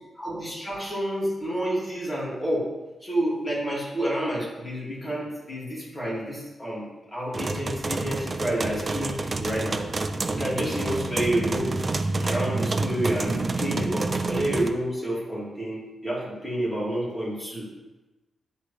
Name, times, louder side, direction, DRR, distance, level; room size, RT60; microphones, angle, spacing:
voice 1, 0.2-2.7 3.0-9.9 10.3-11.7 12.2-17.7, right 1 dB, 5° left, -7 dB, 2.4 m, -29 dB
sound 1, 7.3-14.7, right 3 dB, 25° right, 0.4 m, -28 dB
10.0 x 3.8 x 3.3 m, 1.1 s
wide cardioid pair, 160°, 0 cm